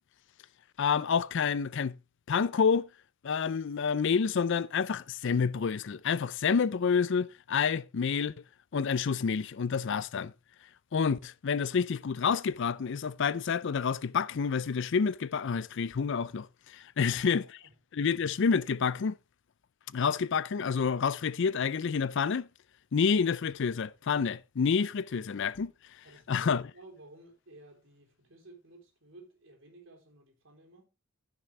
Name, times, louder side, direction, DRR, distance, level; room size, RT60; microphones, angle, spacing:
voice 1, 0.8-2.0 2.3-2.9 3.2-8.3 8.7-10.3 10.9-17.5 17.9-19.1 19.9-22.5 22.9-25.7 26.3-26.6, left 6 dB, 60° left, 0.4 m, -28 dB
voice 2, 16.9-17.7 26.0-30.9, right 2 dB, 65° right, 3.5 m, -55 dB
14.5 x 6.1 x 3.2 m
head